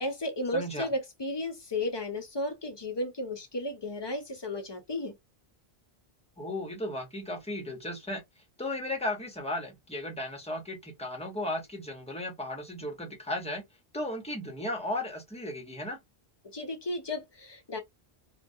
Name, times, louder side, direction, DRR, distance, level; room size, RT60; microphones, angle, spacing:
voice 1, 0.0-5.1 16.4-17.8, left 1 dB, 45° left, 0.3 m, -34 dB
voice 2, 0.5-0.9 6.4-8.2 8.6-13.6 13.9-16.0, left 1 dB, 5° left, 0.6 m, -35 dB
2.2 x 2.1 x 2.5 m
omnidirectional pair, 1.1 m